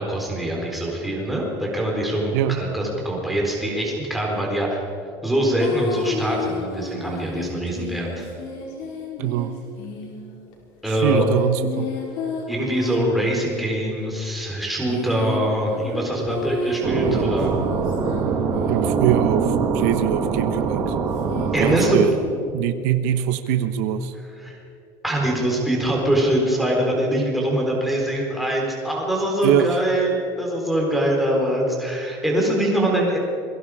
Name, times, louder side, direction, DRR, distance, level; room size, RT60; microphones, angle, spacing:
voice 1, 0.0-4.8 5.2-8.3 10.8-11.3 12.5-17.5 21.5-22.0 24.1-24.6 25.0-33.2, right 1 dB, ahead, -2 dB, 4.1 m, -23 dB
voice 2, 2.3-2.6 9.2-9.5 10.9-11.9 18.7-20.9 21.6-22.1 22.5-24.1 29.4-29.8, right 11 dB, 80° right, 9 dB, 1.3 m, -23 dB
sound 1, 5.6-10.5 11.3-13.8 14.6-19.2 21.1-22.4, left 4 dB, 80° left, 5.7 m, -32 dB
sound 2, 16.8-22.0, right 5 dB, 40° right, 2.7 m, -23 dB
27.5 x 22.5 x 5.0 m, 2.5 s
cardioid pair, 180°, 9 cm